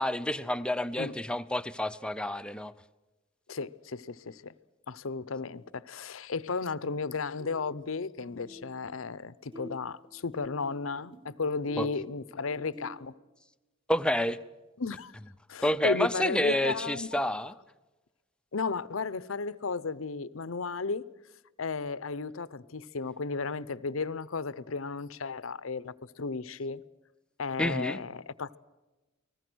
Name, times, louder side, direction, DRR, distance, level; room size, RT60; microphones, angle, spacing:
voice 1, 0.0-2.7 11.8-11.9 13.9-14.4 15.6-17.5 27.6-28.0, left 1 dB, 5° left, 0.7 m, -29 dB
voice 2, 3.5-4.5 4.9-13.1 14.8-15.1 15.5-17.2 18.5-21.0 21.6-26.8 27.4-28.6, left 4 dB, 75° left, 0.8 m, -34 dB
sound 1, 5.3-5.5 6.9-7.1 7.4-9.2 9.5-13.0, equal, 25° right, 2.2 m, -49 dB
29.5 x 20.0 x 6.3 m
head